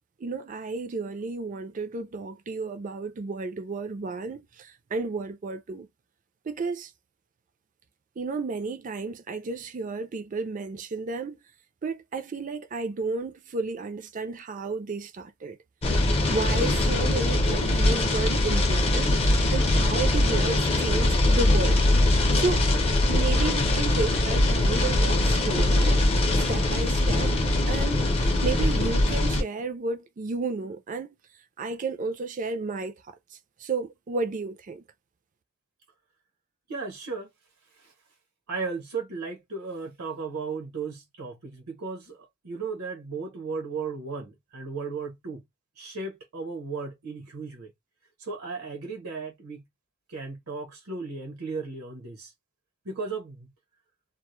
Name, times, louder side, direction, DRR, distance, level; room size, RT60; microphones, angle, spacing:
voice 1, 0.2-5.9 6.5-6.9 8.2-11.4 11.8-15.6 16.3-21.8 22.1-22.6 23.1-26.0 26.3-27.3 27.7-31.1 31.6-32.9 33.6-34.8, right 3 dB, 35° right, 0.4 m, -32 dB
sound 1, 15.8-29.4, left 1 dB, 25° left, 0.5 m, -22 dB
voice 2, 36.7-37.3 37.8-37.9 38.5-42.2 42.4-45.4 45.8-47.7 48.2-49.6 50.1-52.3 52.8-53.5, right 4 dB, 80° right, 0.9 m, -35 dB
2.2 x 2.0 x 3.0 m
head